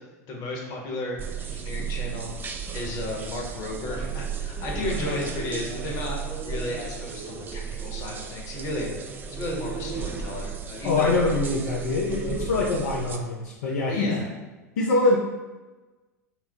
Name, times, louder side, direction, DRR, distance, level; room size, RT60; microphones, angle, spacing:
voice 1, 0.3-2.3 2.7-11.1 13.9-14.3, left 2 dB, 40° left, 0 dB, 1.0 m, -34 dB
sound 1, 1.2-13.2, right 6 dB, 20° right, 0.4 m, -34 dB
voice 2, 10.8-14.2 14.8-15.2, left 3 dB, 60° left, -2 dB, 0.5 m, -24 dB
4.1 x 2.0 x 4.4 m, 1.2 s
figure-of-eight pair, 85°, 9 cm